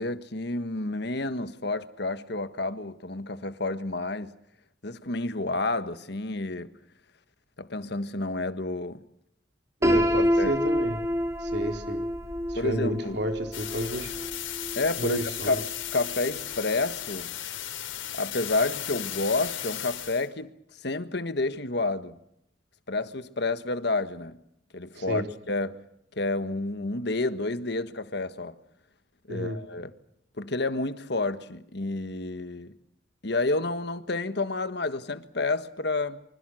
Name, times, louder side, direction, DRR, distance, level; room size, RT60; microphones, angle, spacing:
voice 1, 0.0-4.3 4.8-6.7 7.6-9.0 9.9-10.0 10.4-10.5 12.5-13.2 14.8-17.3 18.1-22.2 22.9-24.4 24.7-25.8 26.1-28.6 29.3-29.9 30.4-32.7 33.2-36.2, left 2 dB, 60° left, 1.5 m, -30 dB
Piano, 9.8-15.7, equal, 15° right, 3.4 m, -28 dB
voice 2, 9.8-11.0 11.4-12.0 12.5-14.1 15.0-15.6 25.0-25.2 29.3-29.6, equal, 60° right, 4.2 m, -31 dB
sound 1, 13.5-20.3, left 11 dB, 90° left, 3.8 m, -36 dB
26.0 x 25.5 x 6.4 m
head